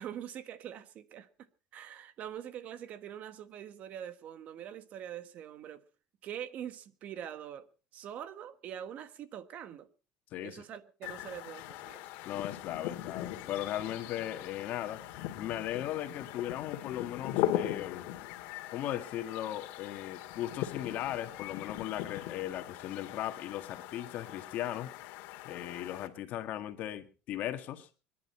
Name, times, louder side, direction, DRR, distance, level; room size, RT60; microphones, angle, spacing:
voice 1, 0.0-1.5 1.7-5.8 6.2-9.9 10.4-12.0, right 10 dB, 50° right, 1.4 m, -44 dB
voice 2, 10.3-10.6 12.2-15.0 15.4-18.1 18.7-24.9 25.4-27.9, left 12 dB, 55° left, 1.8 m, -37 dB
sound 1, 11.0-26.1, left 13 dB, 75° left, 2.0 m, -40 dB
24.0 x 11.0 x 4.6 m
cardioid pair, 135°, 3 cm